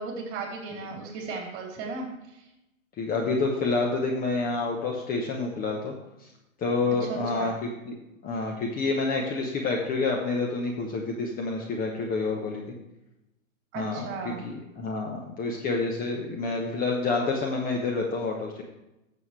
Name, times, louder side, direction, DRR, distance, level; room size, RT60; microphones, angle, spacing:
voice 1, 0.0-2.1 7.0-7.5 13.7-14.4, right 4 dB, 30° right, 0 dB, 3.6 m, -35 dB
voice 2, 3.0-5.9 6.2-6.3 6.6-7.9 8.2-12.7 13.7-18.6, left 3 dB, 20° left, 0 dB, 1.1 m, -28 dB
14.0 x 7.3 x 3.2 m, 0.92 s
hypercardioid pair, 115°, 42 cm